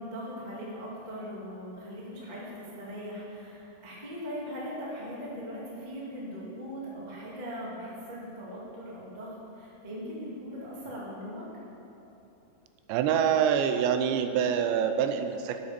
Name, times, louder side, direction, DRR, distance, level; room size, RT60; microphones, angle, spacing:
voice 1, 0.0-11.5, equal, 65° right, -6 dB, 0.4 m, -40 dB
voice 2, 12.9-15.6, right 8 dB, 90° right, 8 dB, 2.9 m, -25 dB
8.1 x 8.0 x 6.7 m, 2.9 s
omnidirectional pair, 5.0 m